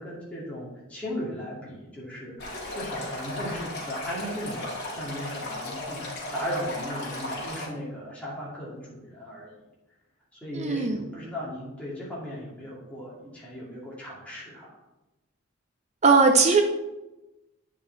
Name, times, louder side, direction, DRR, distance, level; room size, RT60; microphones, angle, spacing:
voice 1, 0.0-9.6 10.4-14.7, equal, 5° left, -8 dB, 2.3 m, -37 dB
Stream, 2.4-7.6, left 1 dB, 55° left, 2.3 m, -35 dB
voice 2, 10.5-11.0 16.0-16.6, right 4 dB, 35° right, 5 dB, 0.5 m, -19 dB
8.7 x 5.0 x 3.9 m, 1.0 s
head